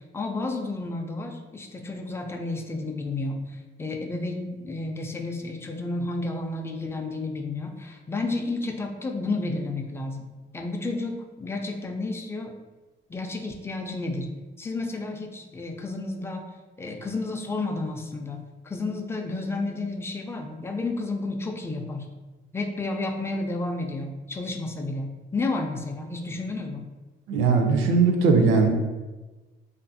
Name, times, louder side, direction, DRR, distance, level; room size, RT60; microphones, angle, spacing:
voice 1, 0.1-10.3 10.5-12.5 13.1-14.3 14.6-16.4 16.8-18.4 18.6-22.1 22.5-26.8, left 2 dB, 10° left, 3 dB, 0.3 m, -31 dB
voice 2, 27.3-28.7, right 4 dB, 90° right, 4 dB, 0.4 m, -19 dB
2.6 x 2.4 x 2.6 m, 1.2 s
cardioid pair, 90°, 20 cm